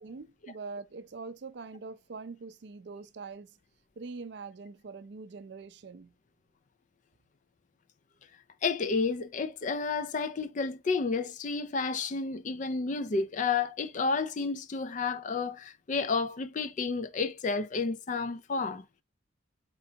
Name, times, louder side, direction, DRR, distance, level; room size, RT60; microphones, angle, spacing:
voice 1, 0.0-3.6 4.0-6.1, right 4 dB, 60° right, 0.4 m, -43 dB
voice 2, 8.6-18.8, left 4 dB, 40° left, 0.3 m, -31 dB
4.3 x 3.9 x 2.7 m
head